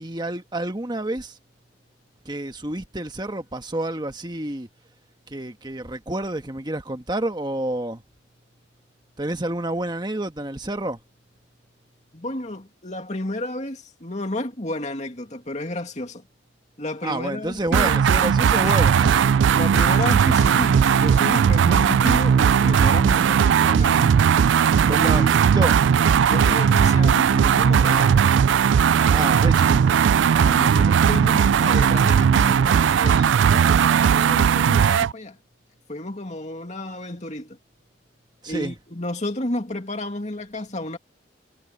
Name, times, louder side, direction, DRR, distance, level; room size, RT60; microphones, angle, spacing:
voice 1, 0.0-1.4 2.2-4.7 5.3-8.0 9.2-11.0 17.0-19.2 24.8-25.8 27.8-28.2 29.1-30.0 38.4-38.8, right 1 dB, 25° right, 1.4 m, -29 dB
voice 2, 12.1-16.2 16.8-18.0 18.6-18.8 19.5-24.2 24.9-25.3 26.3-28.1 30.4-35.4 35.9-37.6 38.5-41.0, left 1 dB, 40° left, 2.5 m, -31 dB
sound 1, 17.7-35.1, right 7 dB, 75° right, 0.3 m, -17 dB
head